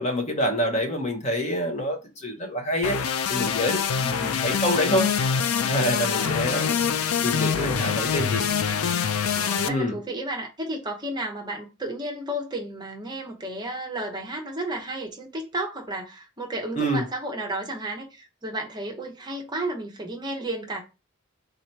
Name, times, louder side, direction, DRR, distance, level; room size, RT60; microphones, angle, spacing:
voice 1, 0.0-3.0 3.3-5.1 5.6-6.7 7.2-8.5 9.7-10.0 16.8-17.0, equal, 30° left, 1.0 m, -26 dB
sound 1, 2.8-9.7, left 7 dB, 85° left, 0.4 m, -25 dB
voice 2, 4.0-4.4 6.1-6.4 9.3-20.8, right 1 dB, 20° right, 0.7 m, -33 dB
3.9 x 2.9 x 4.5 m
head